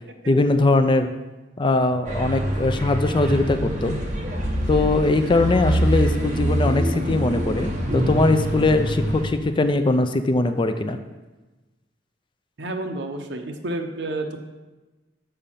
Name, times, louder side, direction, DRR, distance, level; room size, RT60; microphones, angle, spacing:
voice 1, 0.3-1.1 1.6-4.0 4.7-11.0, left 2 dB, 25° left, 9 dB, 0.4 m, -21 dB
sound 1, 2.0-9.2, equal, 45° right, 1.3 m, -25 dB
voice 2, 12.6-14.4, right 2 dB, 65° right, 5 dB, 0.8 m, -30 dB
6.8 x 5.0 x 5.6 m, 1.2 s
head